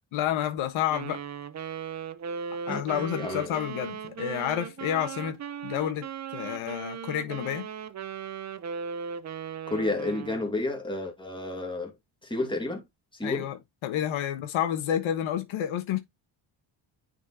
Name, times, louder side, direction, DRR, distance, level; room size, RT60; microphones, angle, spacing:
voice 1, 0.1-1.2 2.7-7.7 13.2-16.0, left 10 dB, 90° left, 1.3 m, -30 dB
Wind instrument woodwind instrument, 0.9-10.5, right 7 dB, 35° right, 0.6 m, -37 dB
voice 2, 2.7-3.5 9.7-11.9 12.2-12.8 13.1-13.5, left 2 dB, 10° left, 2.4 m, -31 dB
9.3 x 4.3 x 2.7 m
cardioid pair, 105°, 47 cm